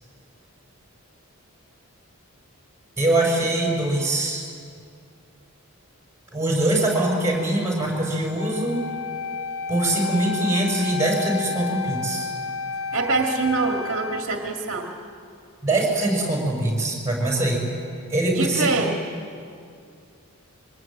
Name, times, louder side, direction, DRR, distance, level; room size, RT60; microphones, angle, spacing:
voice 1, 3.0-4.5 6.3-8.8 9.7-12.3 15.6-17.7 18.1-18.7, right 1 dB, 15° right, -1 dB, 6.6 m, -23 dB
Wind instrument woodwind instrument, 8.3-14.3, left 5 dB, 80° left, 1.2 m, -31 dB
voice 2, 12.9-14.9 18.3-18.9, right 4 dB, 60° right, 2 dB, 2.0 m, -24 dB
25.0 x 23.5 x 9.2 m, 2.4 s
head